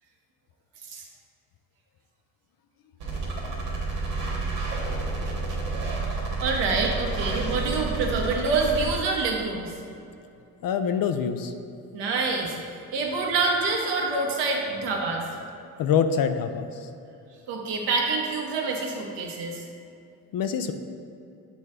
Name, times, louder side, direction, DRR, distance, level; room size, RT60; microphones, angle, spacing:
sound 1, 3.0-8.9, right 3 dB, 90° right, 1.2 m, -30 dB
voice 1, 5.3-5.6 6.1-9.7 11.9-12.5 12.9-15.3 17.5-19.6, right 3 dB, 65° right, 0 dB, 1.2 m, -27 dB
voice 2, 10.6-11.5 15.8-16.7 20.3-20.7, left 7 dB, 50° left, 8 dB, 0.5 m, -25 dB
7.6 x 3.2 x 5.0 m, 2.6 s
hypercardioid pair, 50°, 46 cm